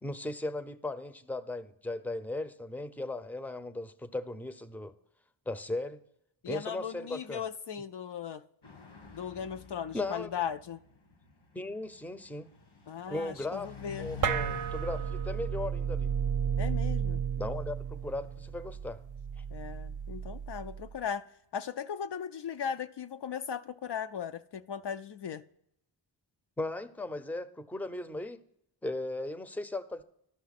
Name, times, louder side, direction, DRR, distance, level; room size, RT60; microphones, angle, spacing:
voice 1, 0.0-4.9 5.5-6.0 6.5-7.4 9.9-10.3 11.5-12.5 13.1-13.7 14.0-16.1 17.4-19.0 19.4-19.5 26.6-28.4 28.8-30.0, left 2 dB, 5° left, 0.6 m, -37 dB
voice 2, 6.4-8.4 9.1-10.8 12.9-14.1 16.6-17.2 19.5-21.2 21.5-25.4, left 8 dB, 60° left, 0.5 m, -37 dB
sound 1, 8.6-19.6, left 5 dB, 75° left, 1.5 m, -49 dB
sound 2, 14.2-21.0, right 7 dB, 40° right, 0.5 m, -33 dB
12.5 x 5.6 x 4.1 m
cardioid pair, 40°, 47 cm